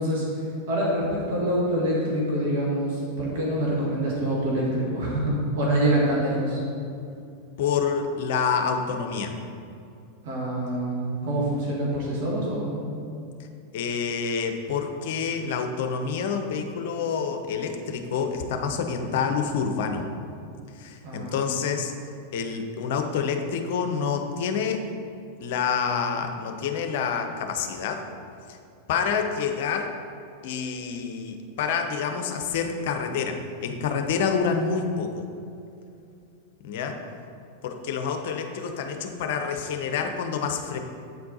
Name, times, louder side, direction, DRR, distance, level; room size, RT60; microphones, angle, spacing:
voice 1, 0.0-6.6 10.2-12.9 21.0-21.6, right 1 dB, 60° right, -5 dB, 1.7 m, -26 dB
voice 2, 7.6-9.3 13.7-20.0 20.8-21.9 22.3-24.8 25.4-28.0 28.9-29.9 30.4-35.2 36.6-37.0 37.6-40.8, left 6 dB, 60° left, 5 dB, 0.6 m, -27 dB
8.0 x 4.4 x 4.1 m, 2.6 s
figure-of-eight pair, 90°, 0 cm